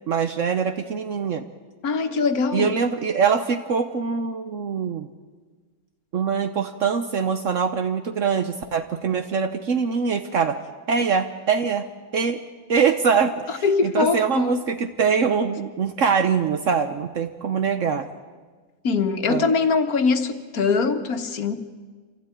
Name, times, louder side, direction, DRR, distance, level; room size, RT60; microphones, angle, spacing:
voice 1, 0.1-1.4 2.5-5.1 6.1-10.6 10.9-11.9 12.1-12.4 12.7-18.1 19.3-19.5, right 6 dB, 65° right, 8 dB, 1.2 m, -23 dB
voice 2, 1.8-2.8 13.5-14.7 18.8-21.5, left 4 dB, 85° left, 7 dB, 1.8 m, -22 dB
26.5 x 16.5 x 9.1 m, 1.5 s
omnidirectional pair, 1.5 m